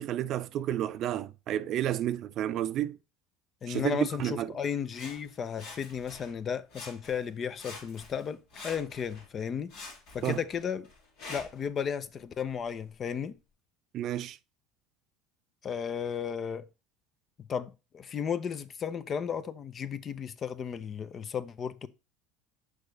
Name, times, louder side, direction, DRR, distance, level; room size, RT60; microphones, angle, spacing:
voice 1, 0.0-3.0 3.7-4.5 10.2-10.4 13.9-14.4, right 12 dB, 55° right, 0.4 m, -31 dB
voice 2, 3.6-9.7 10.1-10.9 11.3-13.4 15.6-16.7 17.5-21.9, left 7 dB, 40° left, 0.6 m, -34 dB
Sawing, 4.9-6.4 6.7-7.3 7.6-9.3 9.7-11.7 12.4-12.5, left 3 dB, 65° left, 2.0 m, -47 dB
6.3 x 4.8 x 3.2 m
hypercardioid pair, 80°, 0 cm